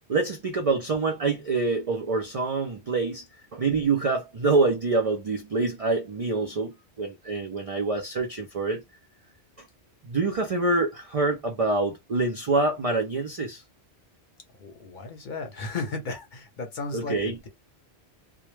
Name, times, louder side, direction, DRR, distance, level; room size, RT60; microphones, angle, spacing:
voice 1, 0.0-3.3 3.5-8.8 9.6-9.7 10.0-13.6 16.9-17.4, right 3 dB, 55° right, 0.4 m, -26 dB
voice 2, 14.6-17.5, left 3 dB, 55° left, 0.7 m, -35 dB
2.1 x 2.0 x 3.0 m
omnidirectional pair, 1.1 m